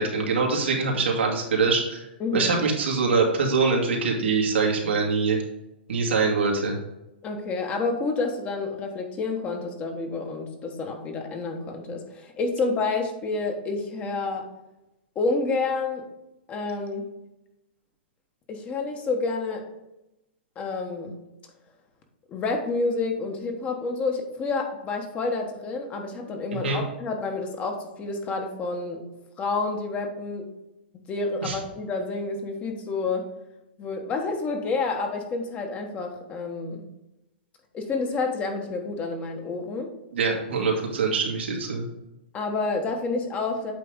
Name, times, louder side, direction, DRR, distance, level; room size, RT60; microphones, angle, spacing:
voice 1, 0.0-2.0 2.3-5.4 5.9-6.8 26.5-26.8 31.4-31.5 40.1-41.8, right 4 dB, 85° right, -1 dB, 2.1 m, -24 dB
voice 2, 2.2-2.5 7.2-14.5 15.1-16.0 16.5-17.1 18.5-19.6 20.6-21.1 22.3-29.0 29.4-30.5 30.9-33.3 33.8-36.8 37.7-39.9 42.3-43.7, left 3 dB, 20° left, 3 dB, 1.2 m, -29 dB
8.5 x 3.4 x 5.1 m, 0.93 s
hypercardioid pair, 140°, 6 cm